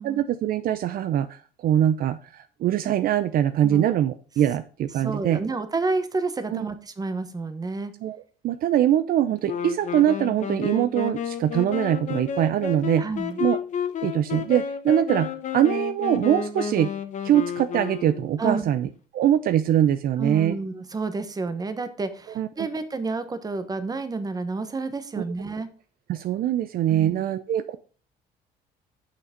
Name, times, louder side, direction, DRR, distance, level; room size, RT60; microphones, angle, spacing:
voice 1, 0.0-5.4 6.5-6.7 8.0-8.2 8.4-13.1 13.4-13.6 14.0-16.9 17.2-20.6 22.4-22.7 26.1-27.8, right 11 dB, 60° right, 11 dB, 0.6 m, -23 dB
voice 2, 3.6-4.0 4.9-7.9 13.0-13.4 18.4-18.7 20.2-25.7 26.9-27.2, right 3 dB, 20° right, 10 dB, 1.1 m, -30 dB
Wind instrument woodwind instrument, 9.4-18.5, left 7 dB, 45° left, 1.0 m, -31 dB
6.9 x 6.0 x 5.1 m, 0.39 s
cardioid pair, 110°, 17 cm